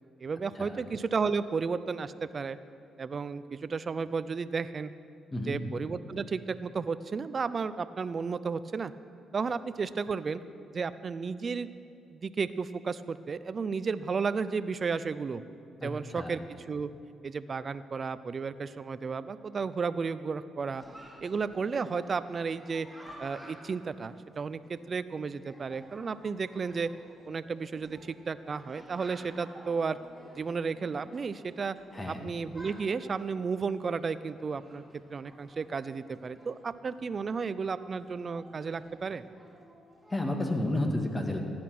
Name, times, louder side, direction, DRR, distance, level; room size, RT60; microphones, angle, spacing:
voice 1, 0.2-2.6 3.0-4.9 5.5-8.9 9.3-10.4 10.7-11.7 12.1-15.4 15.8-16.4 16.7-16.9 17.2-20.8 21.2-22.9 23.2-26.9 27.3-30.0 30.4-31.8 32.1-34.8 35.1-39.2, right 5 dB, 40° right, 14 dB, 0.5 m, -33 dB
voice 2, 5.3-5.6 15.8-16.4 31.9-32.2 40.1-41.4, left 1 dB, 20° left, 3 dB, 1.9 m, -31 dB
Chatter, 20.8-40.4, right 1 dB, ahead, 3.0 m, -53 dB
15.0 x 10.5 x 6.1 m, 2.4 s
cardioid pair, 90°, 0 cm